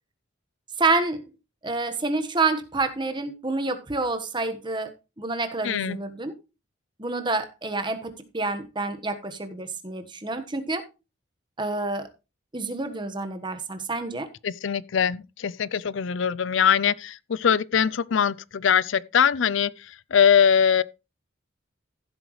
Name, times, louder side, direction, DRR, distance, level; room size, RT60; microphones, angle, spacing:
voice 1, 0.8-1.2 1.6-4.9 5.2-6.3 7.0-10.8 11.6-12.1 12.5-14.3, right 3 dB, 25° right, 1.3 m, -28 dB
voice 2, 5.6-6.0 14.4-20.8, left 7 dB, 65° left, 0.5 m, -22 dB
15.0 x 7.9 x 3.2 m
head